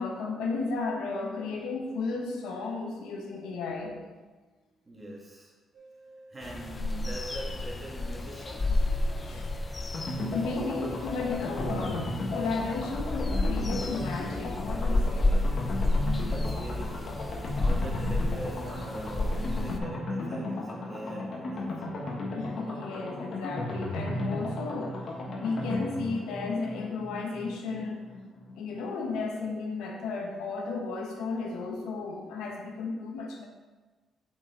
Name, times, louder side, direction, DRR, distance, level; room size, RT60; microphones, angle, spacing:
voice 1, 0.0-4.0 9.2-9.5 10.3-15.4 22.0-28.1 28.6-33.4, left 3 dB, 90° left, 1 dB, 1.0 m, -34 dB
voice 2, 4.9-5.5 6.3-8.9 16.2-21.7, right 1 dB, 25° right, -3 dB, 1.9 m, -42 dB
sound 1, 5.7-12.0 12.5-13.5, equal, 65° right, 1.0 m, -51 dB
sound 2, 6.4-19.8, left 2 dB, 30° left, 0.5 m, -31 dB
sound 3, 9.9-28.5 28.8-28.9 29.2-29.3, left 2 dB, 55° left, 1.4 m, -35 dB
5.6 x 5.5 x 3.7 m, 1.3 s
cardioid pair, 90°, 0 cm